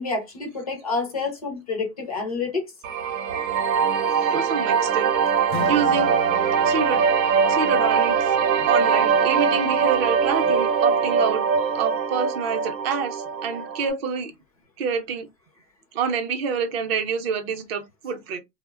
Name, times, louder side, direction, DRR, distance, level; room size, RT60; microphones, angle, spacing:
voice 1, 0.0-2.6, left 4 dB, 25° left, 0.3 m, -28 dB
sound 1, 2.8-13.9, right 6 dB, 80° right, 0.7 m, -22 dB
voice 2, 4.3-5.1 5.7-6.1 6.6-7.0 7.5-11.5 11.7-14.3 14.8-15.3 15.9-18.4, right 6 dB, 40° right, 0.6 m, -27 dB
Acoustic guitar / Strum, 5.5-10.7, left 6 dB, 85° left, 0.7 m, -40 dB
2.7 x 2.1 x 2.3 m
hypercardioid pair, 140°, 49 cm